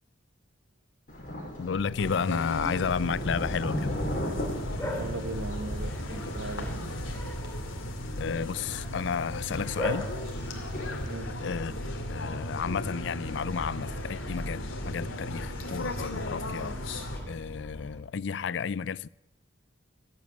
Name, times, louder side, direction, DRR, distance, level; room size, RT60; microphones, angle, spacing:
Thunder, 1.1-11.1, left 1 dB, 45° left, 5.6 m, -38 dB
voice 1, 1.6-4.0 8.2-10.1 11.4-11.7 12.1-16.8 17.3-19.1, left 6 dB, 65° left, 0.4 m, -32 dB
sound 1, 2.0-17.2, left 1 dB, 85° left, 2.3 m, -36 dB
Bark, 3.6-18.0, equal, 10° left, 2.7 m, -41 dB
voice 2, 4.9-6.7 11.1-11.3, right 2 dB, 85° right, 1.2 m, -38 dB
15.5 x 8.5 x 8.3 m
head